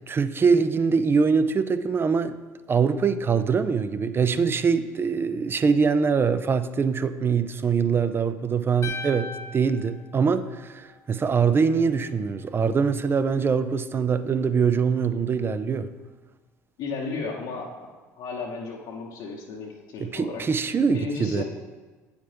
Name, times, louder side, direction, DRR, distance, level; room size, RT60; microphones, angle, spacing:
voice 1, 0.0-2.4 2.7-15.9 20.0-21.4, right 5 dB, 25° right, 12 dB, 0.4 m, -23 dB
sound 1, 8.8-11.1, left 3 dB, 30° left, 0.6 m, -38 dB
voice 2, 16.8-17.7 18.2-20.5 20.9-21.4, left 4 dB, 55° left, -2 dB, 1.0 m, -34 dB
8.6 x 4.9 x 3.3 m, 1.3 s
figure-of-eight pair, 60°, 9 cm